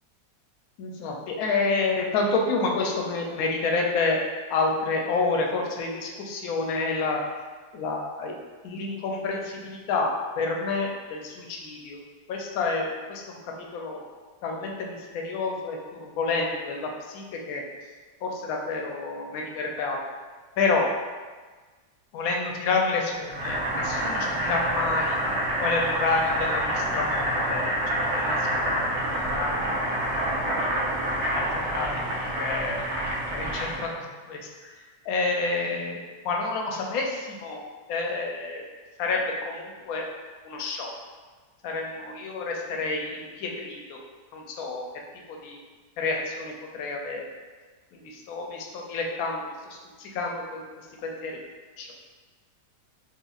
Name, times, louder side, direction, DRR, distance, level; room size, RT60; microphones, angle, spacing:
voice 1, 0.8-4.2 4.5-7.2 7.7-8.3 8.6-10.1 10.4-12.0 12.3-13.4 13.7-14.0 14.4-17.6 18.2-20.0 20.6-20.9 22.1-25.2 25.6-27.7 28.0-29.6 30.1-30.7 31.3-32.8 33.3-34.5 35.1-36.0 36.2-37.6 37.9-38.6 39.0-40.1 40.4-40.9 41.6-44.0 44.3-44.8 45.4-45.6 46.0-47.2 47.9-49.5 50.0-50.6 51.0-51.4 51.8-52.1, left 3 dB, 70° left, 0 dB, 0.9 m, -29 dB
Boiling, 23.3-33.9, right 1 dB, 65° right, 1.2 m, -27 dB
4.6 x 2.5 x 2.4 m, 1.4 s
omnidirectional pair, 1.9 m